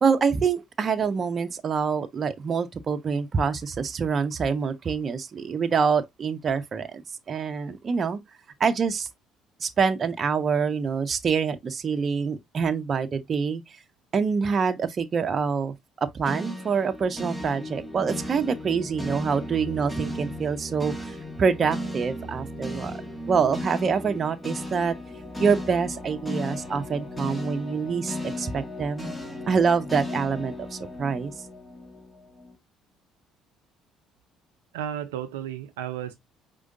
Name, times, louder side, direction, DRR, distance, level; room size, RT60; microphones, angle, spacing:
voice 1, 0.0-7.0 7.3-8.2 8.6-9.1 9.6-13.6 14.1-15.7 16.1-20.9 21.4-22.9 23.3-24.9 25.4-29.1 29.5-31.3, right 5 dB, 45° right, 0.7 m, -26 dB
sound 1, 16.2-32.5, left 1 dB, 15° left, 1.7 m, -36 dB
voice 2, 34.7-36.1, right 10 dB, 85° right, 0.5 m, -33 dB
4.9 x 3.8 x 2.6 m
hypercardioid pair, 60°, 0 cm